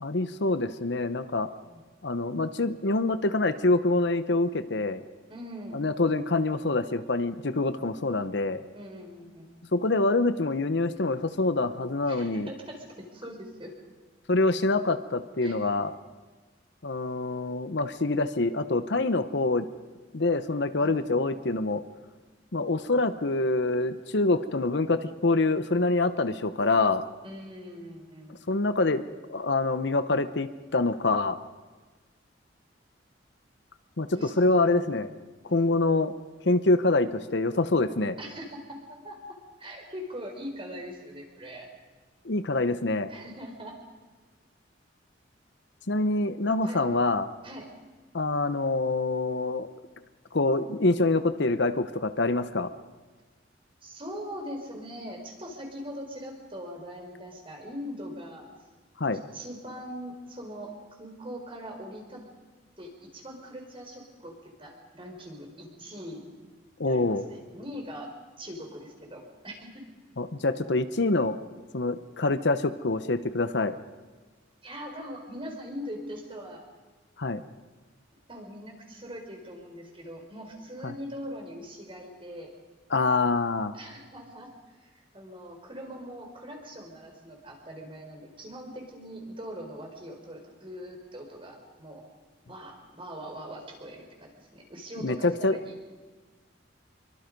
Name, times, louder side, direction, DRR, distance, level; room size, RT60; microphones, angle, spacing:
voice 1, 0.0-1.5 2.0-5.0 5.7-8.6 9.7-12.5 14.3-15.9 16.8-19.6 20.1-21.8 22.5-27.0 28.5-31.4 34.0-35.1 35.5-36.1 36.4-38.2 42.2-43.1 45.9-47.3 48.1-49.7 50.3-52.7 59.0-59.2 66.8-67.2 70.2-71.4 71.7-73.7 77.2-77.4 80.8-80.9 82.9-83.7 95.0-95.6, left 2 dB, 65° left, 11 dB, 0.9 m, -25 dB
voice 2, 5.3-5.8 8.7-9.5 12.1-13.7 15.4-15.6 20.8-21.0 27.2-28.4 34.1-34.9 35.5-35.7 38.2-39.2 39.6-41.7 43.1-43.7 46.6-46.8 47.4-47.7 53.8-58.4 59.1-60.7 61.0-62.2 62.8-66.2 66.9-68.1 68.4-69.9 74.6-76.6 78.3-82.5 83.7-92.0 92.5-95.7, equal, 30° right, 2 dB, 4.6 m, -41 dB
27.0 x 23.5 x 5.4 m, 1.3 s
head